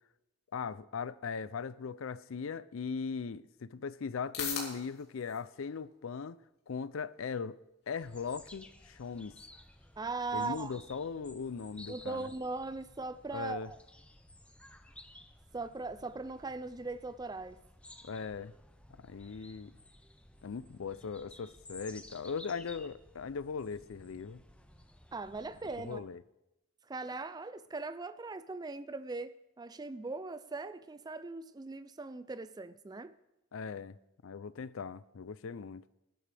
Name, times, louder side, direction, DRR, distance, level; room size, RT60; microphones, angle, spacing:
voice 1, 0.5-6.4 6.7-7.6 7.9-9.4 10.3-12.3 13.3-13.7 18.0-18.5 19.0-19.7 20.4-24.4 25.8-26.2 33.5-34.0 34.2-35.8, left 5 dB, 70° left, 0.5 m, -39 dB
sound 1, 3.4-19.8, left 6 dB, 50° left, 3.3 m, -51 dB
sound 2, 8.0-26.0, left 1 dB, 5° left, 0.8 m, -56 dB
voice 2, 10.0-10.8 11.9-13.8 15.5-17.6 25.1-26.1 26.9-33.1, right 3 dB, 20° right, 0.4 m, -40 dB
19.0 x 12.0 x 3.4 m
head